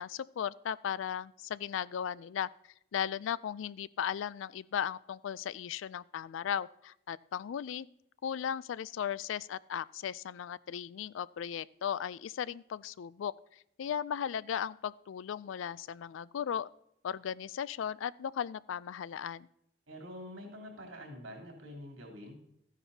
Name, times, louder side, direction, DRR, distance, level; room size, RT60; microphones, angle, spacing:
voice 1, 0.0-2.5 2.9-7.9 8.2-16.7 17.0-19.5, left 8 dB, 80° left, 20 dB, 0.3 m, -36 dB
voice 2, 19.9-22.3, equal, 80° right, 0 dB, 3.3 m, -46 dB
14.0 x 9.9 x 2.8 m, 0.76 s
head